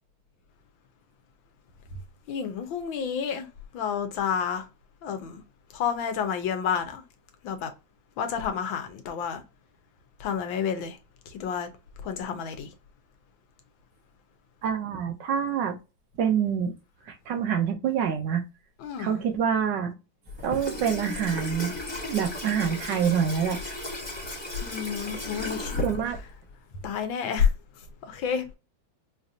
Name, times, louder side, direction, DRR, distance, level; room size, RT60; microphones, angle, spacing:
voice 1, 2.3-3.5 3.7-4.7 5.0-5.4 5.7-7.0 7.4-7.7 8.2-9.4 10.2-11.0 11.3-11.7 12.0-12.7 18.8-19.2 24.6-25.8 26.8-27.5 28.0-28.5, left 7 dB, 85° left, 1.6 m, -29 dB
voice 2, 14.6-15.8 16.2-16.7 17.1-18.4 19.0-19.9 20.4-21.7 22.0-23.6 25.8-26.2, right 8 dB, 70° right, 1.3 m, -26 dB
Water tap faucet / Sink (filling or washing), 20.3-26.5, left 1 dB, 20° left, 0.9 m, -35 dB
5.0 x 2.7 x 2.5 m
omnidirectional pair, 2.1 m